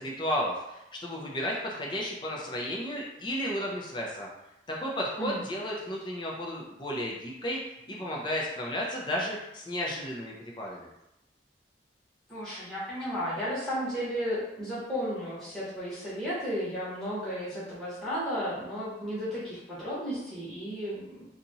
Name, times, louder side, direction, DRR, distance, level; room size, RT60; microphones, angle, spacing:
voice 1, 0.0-4.3 4.7-7.6 7.9-10.9, equal, 25° left, -3 dB, 0.6 m, -33 dB
voice 2, 12.3-21.4, equal, 5° left, -12 dB, 1.1 m, -34 dB
2.8 x 2.5 x 4.0 m, 0.89 s
head